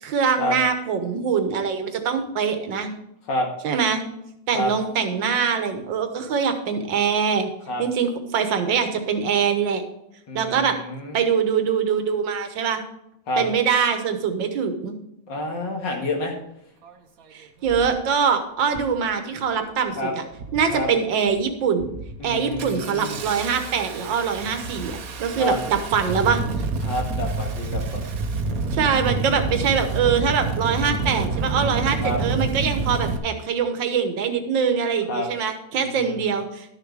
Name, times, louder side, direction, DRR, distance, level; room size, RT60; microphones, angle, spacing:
voice 1, 0.0-2.9 3.6-4.0 4.5-7.5 7.8-9.8 10.4-10.8 11.1-12.8 13.4-15.0 17.3-20.2 20.5-22.0 22.2-26.4 28.7-36.7, right 6 dB, 90° right, 7 dB, 1.9 m, -23 dB
voice 2, 10.3-11.2 13.3-13.5 15.3-16.3 19.9-20.1 20.7-20.9 22.2-23.2 25.4-25.6 26.8-28.2 32.0-32.2 35.1-35.3 35.8-36.3, left 1 dB, 75° left, 1 dB, 2.6 m, -28 dB
Engine starting, 16.8-16.9 17.7-18.0 18.7-19.0 19.4-19.9 20.3-20.9 21.3-21.5 21.8-33.2, right 3 dB, 55° right, 1.2 m, -28 dB
12.0 x 6.6 x 4.8 m, 0.81 s
omnidirectional pair, 2.0 m